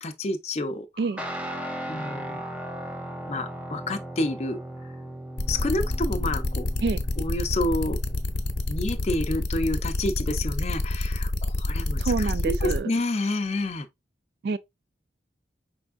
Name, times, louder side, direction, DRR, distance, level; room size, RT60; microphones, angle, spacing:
voice 1, 0.0-0.9 1.9-2.4 3.3-4.6 5.5-6.7 7.2-8.0 8.7-13.9, left 2 dB, 35° left, 0.5 m, -29 dB
Guitar, 1.2-9.3, right 1 dB, 5° right, 0.6 m, -38 dB
sound 1, 5.4-12.8, left 2 dB, 75° left, 0.8 m, -27 dB
voice 2, 12.0-12.9 14.4-14.6, right 4 dB, 65° right, 0.3 m, -27 dB
5.2 x 3.5 x 2.4 m
head